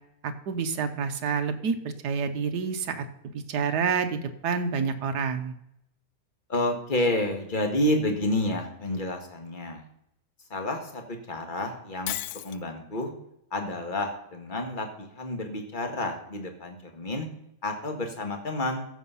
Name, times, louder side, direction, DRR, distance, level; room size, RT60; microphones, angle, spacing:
voice 1, 0.2-1.8 2.0-3.0 3.3-5.5, right 6 dB, 60° right, 7 dB, 1.3 m, -28 dB
voice 2, 6.5-9.8 10.5-12.2 12.4-13.1 13.5-17.3 17.6-18.9, left 1 dB, 25° left, 4 dB, 1.6 m, -29 dB
Shatter, 12.1-12.6, left 14 dB, 80° left, 1.4 m, -33 dB
15.0 x 6.4 x 5.6 m, 0.78 s
omnidirectional pair, 2.3 m